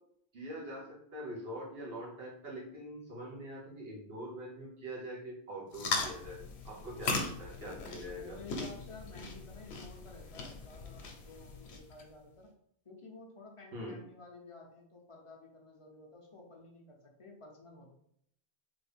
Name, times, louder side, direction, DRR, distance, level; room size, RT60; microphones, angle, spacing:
voice 1, 0.3-6.4 6.6-8.4 13.7-14.0, equal, 65° right, -2 dB, 1.2 m, -43 dB
sound 1, 5.7-12.0, left 3 dB, 85° left, 0.9 m, -39 dB
voice 2, 7.9-12.5 12.8-17.9, left 3 dB, 45° left, 0 dB, 0.5 m, -53 dB
3.0 x 2.5 x 3.3 m, 0.70 s
omnidirectional pair, 1.1 m